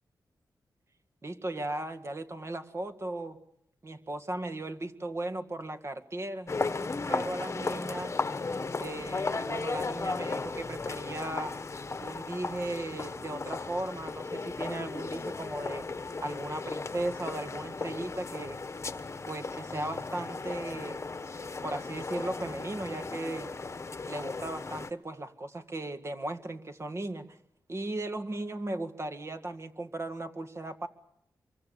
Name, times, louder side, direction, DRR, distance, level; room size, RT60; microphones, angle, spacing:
voice 1, 1.2-3.4 3.8-6.5 7.1-8.2 8.8-11.5 12.0-15.8 16.2-18.6 19.3-21.0 21.6-23.5 24.1-27.4 27.7-30.9, right 2 dB, 35° right, 8 dB, 2.0 m, -37 dB
sound 1, 6.5-24.9, left 3 dB, 35° left, 1.2 m, -36 dB
26.5 x 23.5 x 7.1 m, 0.79 s
cardioid pair, 85°, 8 cm